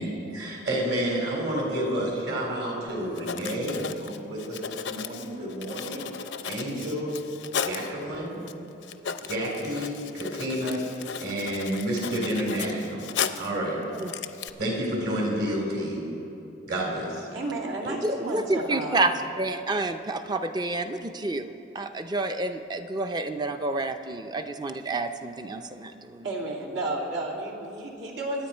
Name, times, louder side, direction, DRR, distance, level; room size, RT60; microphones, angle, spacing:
voice 1, 0.3-6.0 6.5-7.2 7.6-8.4 9.2-13.0 13.4-13.8 14.6-16.0 16.7-17.3, right 1 dB, 55° right, -2 dB, 3.8 m, -30 dB
Writing, 2.9-3.0 3.1-7.9 8.5-8.6 8.8-13.6 13.9-14.5, left 7 dB, 70° left, 0.6 m, -35 dB
voice 2, 17.3-19.0 26.2-28.5, right 2 dB, 75° right, -2 dB, 2.4 m, -32 dB
voice 3, 18.0-26.3, right 2 dB, 20° right, 8 dB, 0.5 m, -29 dB
25.5 x 9.2 x 4.5 m, 2.9 s
head